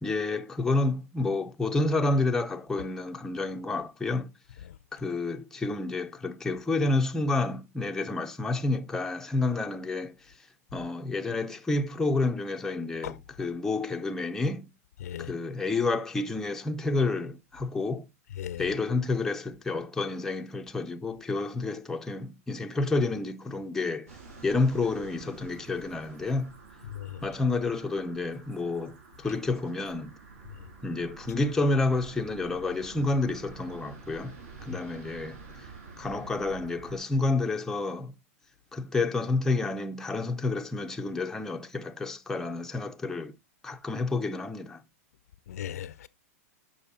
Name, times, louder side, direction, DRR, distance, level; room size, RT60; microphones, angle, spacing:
voice 1, 0.0-4.3 4.9-10.3 10.7-14.7 15.2-18.1 18.6-24.1 24.4-26.5 27.2-30.1 30.8-34.4 34.6-35.4 36.0-38.1 38.7-43.3 43.6-44.8, left 3 dB, 5° left, 0.6 m, -29 dB
voice 2, 15.0-15.3 18.4-18.6 26.9-27.2 34.7-34.8 45.5-46.1, left 10 dB, 80° left, 0.6 m, -37 dB
sound 1, 24.1-37.0, right 4 dB, 65° right, 3.8 m, -48 dB
7.0 x 5.4 x 4.2 m
hypercardioid pair, 135°, 8 cm